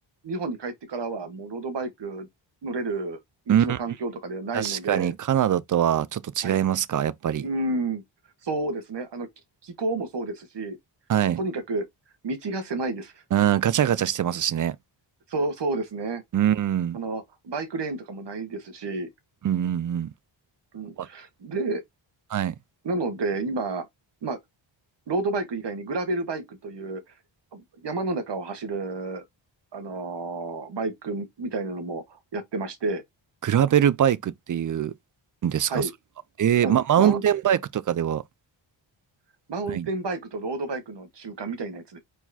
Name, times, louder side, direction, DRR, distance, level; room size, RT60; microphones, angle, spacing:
voice 1, 0.2-2.3 2.6-3.2 3.5-5.1 6.4-6.7 7.4-8.0 8.4-9.3 9.6-10.8 11.4-11.8 12.2-13.1 15.3-16.2 16.9-19.1 20.7-21.8 22.8-23.9 24.2-24.4 25.1-27.0 27.5-29.2 29.7-33.0 35.7-35.9 36.6-37.2 39.5-42.0, right 3 dB, 60° right, 1.6 m, -30 dB
voice 2, 4.5-7.4 11.1-11.4 13.3-14.8 16.3-17.0 19.4-20.1 21.0-21.1 22.3-22.5 33.4-34.9 35.4-35.9 36.4-38.2 39.7-39.9, right 10 dB, 40° right, 0.5 m, -23 dB
4.6 x 4.1 x 2.8 m
cardioid pair, 80°, 48 cm